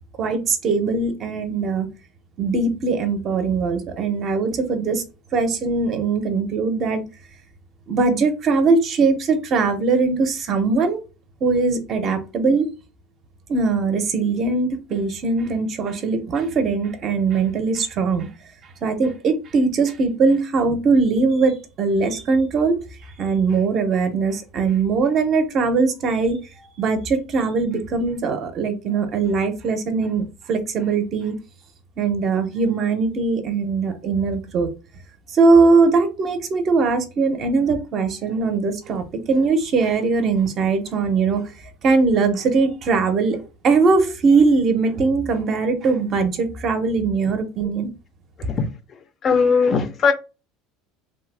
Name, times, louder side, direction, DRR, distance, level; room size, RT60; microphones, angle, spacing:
voice 1, 0.2-1.9 2.4-5.0 5.3-7.0 7.9-11.0 11.4-12.7 13.5-18.3 18.8-22.8 23.2-26.4 26.8-31.4 32.0-34.7 35.3-41.5 41.8-47.9, right 4 dB, 35° right, 0.6 m, -20 dB
voice 2, 49.2-50.1, left 5 dB, 30° left, 0.4 m, -18 dB
3.1 x 2.0 x 3.2 m
cardioid pair, 145°, 0 cm